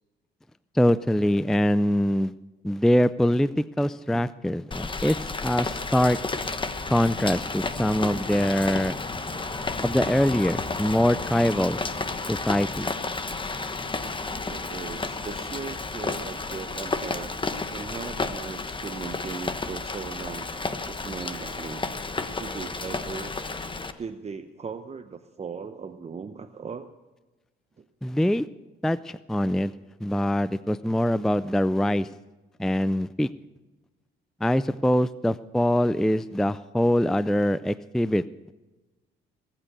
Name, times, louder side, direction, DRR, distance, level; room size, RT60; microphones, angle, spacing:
voice 1, 0.7-2.3 2.6-6.2 6.9-9.0 9.8-11.8 12.3-12.9 28.0-28.4 28.8-29.7 30.0-32.1 32.6-33.3 34.4-38.2, equal, ahead, 16 dB, 0.4 m, -23 dB
Rain, 4.7-23.9, left 3 dB, 25° left, 1.2 m, -32 dB
voice 2, 14.5-17.3 17.7-20.5 20.9-21.8 22.4-23.4 24.0-26.9 27.8-27.9, right 5 dB, 30° right, 8 dB, 0.8 m, -38 dB
20.0 x 9.0 x 6.7 m, 1.1 s
cardioid pair, 80°, 21 cm